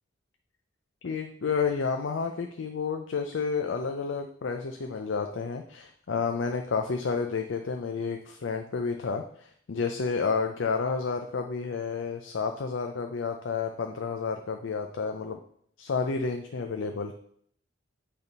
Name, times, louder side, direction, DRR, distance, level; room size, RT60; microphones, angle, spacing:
voice 1, 1.0-15.4 15.8-17.1, left 5 dB, 85° left, 5 dB, 0.5 m, -30 dB
8.2 x 3.5 x 5.3 m, 0.64 s
head